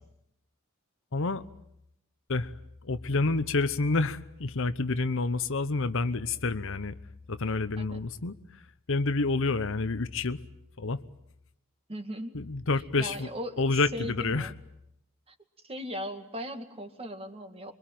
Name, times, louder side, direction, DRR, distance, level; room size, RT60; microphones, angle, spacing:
voice 1, 1.1-1.4 2.3-2.5 2.8-7.0 7.3-8.3 8.9-10.4 10.8-11.0 12.3-13.3 13.6-14.5, left 3 dB, 65° left, 13 dB, 1.0 m, -28 dB
voice 2, 11.9-12.4 13.0-14.5 15.3-15.4 15.6-17.7, equal, 30° right, 7 dB, 2.2 m, -38 dB
25.5 x 23.0 x 9.2 m, 0.79 s
head